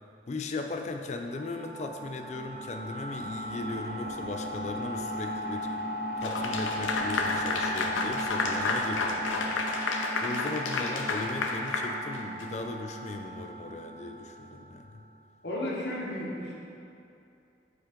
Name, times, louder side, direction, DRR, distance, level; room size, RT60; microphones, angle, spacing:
voice 1, 0.3-5.7 6.2-9.5 10.2-15.0, left 3 dB, 35° left, 4 dB, 0.3 m, -37 dB
sound 1, 1.3-14.8, equal, 50° right, 0.5 m, -36 dB
Clapping / Applause, 6.2-12.6, left 3 dB, 85° left, 0.5 m, -31 dB
voice 2, 15.4-16.5, left 1 dB, 55° left, -5 dB, 1.1 m, -33 dB
5.3 x 3.7 x 5.0 m, 2.7 s
head